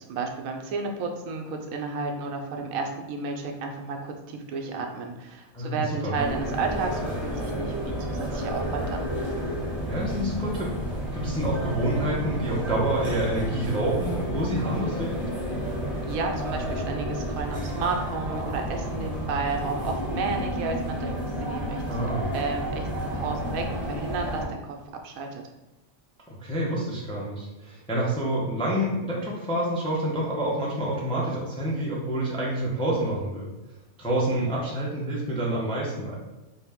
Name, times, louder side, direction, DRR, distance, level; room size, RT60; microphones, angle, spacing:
voice 1, 0.0-9.1 15.6-15.8 16.1-21.8 22.3-24.8 25.0-25.4, right 4 dB, 80° right, 3 dB, 1.0 m, -32 dB
voice 2, 5.5-6.1 9.9-10.7 11.1-15.3 21.9-22.3 26.4-33.4 34.0-36.2, right 1 dB, 5° left, -5 dB, 0.4 m, -28 dB
sound 1, 6.1-24.4, equal, 25° left, 1.5 m, -31 dB
3.7 x 2.7 x 3.5 m, 1.0 s
omnidirectional pair, 1.5 m